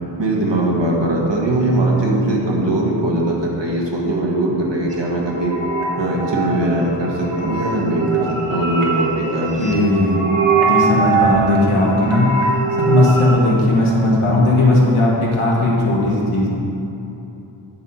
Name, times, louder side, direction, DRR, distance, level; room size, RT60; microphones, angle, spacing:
voice 1, 0.2-5.5 5.9-9.7, right 1 dB, 60° right, -2 dB, 1.6 m, -20 dB
sound 1, 4.9-13.3, right 5 dB, 90° right, 1.4 m, -22 dB
voice 2, 9.6-10.2 10.6-12.3 12.8-16.5, left 2 dB, 85° left, -4 dB, 1.7 m, -16 dB
10.5 x 4.4 x 5.6 m, 3.0 s
wide cardioid pair, 100°, 48 cm